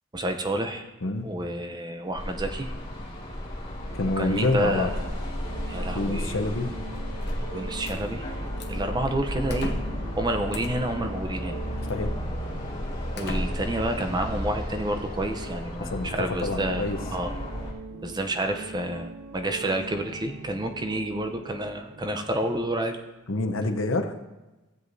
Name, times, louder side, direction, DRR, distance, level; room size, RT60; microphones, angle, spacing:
voice 1, 0.1-0.9 1.2-2.7 4.2-4.9 5.7-6.4 7.5-8.2 8.7-9.7 10.1-11.5 13.1-17.3 18.0-23.0, right 1 dB, 20° right, 6 dB, 0.6 m, -29 dB
sound 1, 2.2-17.7, equal, 25° left, 1.9 m, -33 dB
sound 2, 3.8-22.3, right 3 dB, 90° right, 0.8 m, -43 dB
voice 2, 3.9-4.9 5.9-6.7 11.9-12.1 15.8-17.0 23.3-24.1, left 2 dB, 75° left, 7 dB, 0.8 m, -27 dB
sound 3, 7.2-8.0 8.6-8.9 9.5-10.1 10.5-10.9 11.8-12.0 12.5-12.6 13.1-13.8, left 2 dB, 55° left, 0.9 m, -37 dB
15.5 x 7.8 x 2.7 m, 1.1 s
head